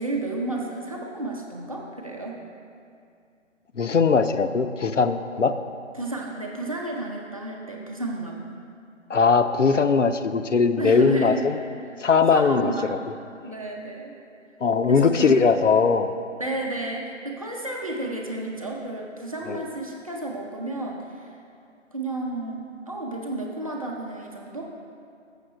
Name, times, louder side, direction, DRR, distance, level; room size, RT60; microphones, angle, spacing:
voice 1, 0.0-2.4 5.9-8.4 10.8-11.5 11.9-13.0 13.4-14.2 14.9-15.4 16.4-21.4 21.9-24.6, right 2 dB, 30° right, -1 dB, 0.7 m, -32 dB
voice 2, 3.7-5.5 9.1-11.6 12.0-13.0 14.6-16.1 19.5-19.6, left 5 dB, 75° left, 9 dB, 0.6 m, -20 dB
6.9 x 6.6 x 6.4 m, 2.4 s
figure-of-eight pair, 155°, 37 cm